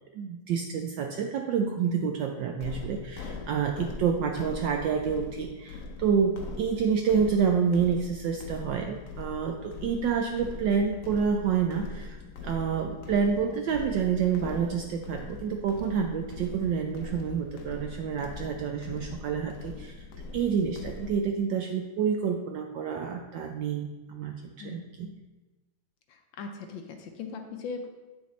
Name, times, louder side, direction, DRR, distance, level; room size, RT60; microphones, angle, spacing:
voice 1, 0.1-12.2 12.4-19.9 20.3-25.1, right 6 dB, 75° right, 3 dB, 1.0 m, -28 dB
sound 1, 2.6-21.2, left 4 dB, 90° left, 0.7 m, -41 dB
voice 2, 24.6-25.1 26.1-27.9, left 4 dB, 70° left, 4 dB, 1.2 m, -40 dB
8.6 x 6.8 x 3.1 m, 1.2 s
omnidirectional pair, 2.4 m